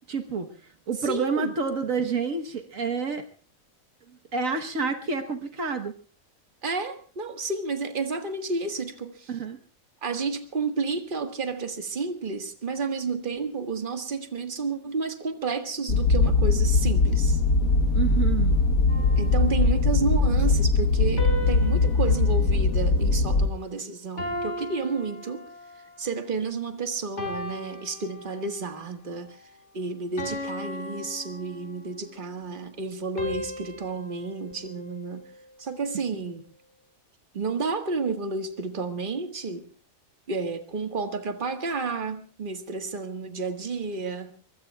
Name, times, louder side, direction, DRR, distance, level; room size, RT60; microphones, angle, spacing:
voice 1, 0.1-3.2 4.3-5.9 9.3-9.6 17.9-18.6 36.1-36.2, right 4 dB, 70° right, 5 dB, 1.6 m, -29 dB
voice 2, 1.0-1.5 6.6-9.3 10.0-17.4 19.2-25.5 26.0-29.4 29.7-35.2 35.6-36.4 37.3-39.7 40.3-44.3, right 4 dB, 40° right, 5 dB, 1.7 m, -31 dB
sound 1, 15.9-23.5, left 3 dB, 75° left, 1.6 m, -21 dB
sound 2, 18.9-20.2 21.2-23.7 24.2-25.9 26.5-26.7 27.2-28.7 29.2-29.5 30.2-32.1 33.2-35.6, equal, 55° left, 5.0 m, -38 dB
24.0 x 23.5 x 2.3 m, 0.41 s
omnidirectional pair, 1.4 m